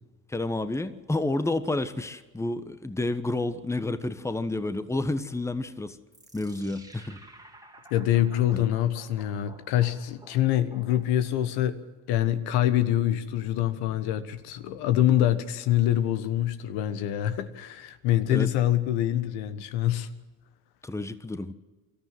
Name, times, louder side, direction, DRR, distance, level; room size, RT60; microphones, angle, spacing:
voice 1, 0.3-6.0 6.3-7.2 8.5-8.6 18.3-18.5 20.8-21.5, left 2 dB, 5° left, 1.2 m, -30 dB
sound 1, 6.1-11.4, right 1 dB, 10° right, 2.2 m, -52 dB
voice 2, 7.9-11.8 12.1-20.1, left 12 dB, 65° left, 1.3 m, -25 dB
24.5 x 14.0 x 7.7 m
hypercardioid pair, 60°, 42 cm